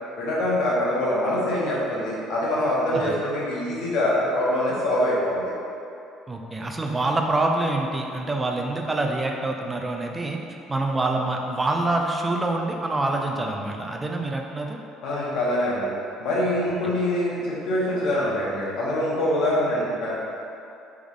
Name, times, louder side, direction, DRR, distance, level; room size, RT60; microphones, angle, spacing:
voice 1, 0.2-5.5 15.0-15.9 16.2-20.1, left 1 dB, 65° left, -6 dB, 1.1 m, -24 dB
voice 2, 6.3-10.4 10.7-14.8 16.8-16.9, right 2 dB, 15° right, 2 dB, 0.4 m, -26 dB
3.6 x 3.6 x 3.5 m, 2.7 s
cardioid pair, 145°, 0 cm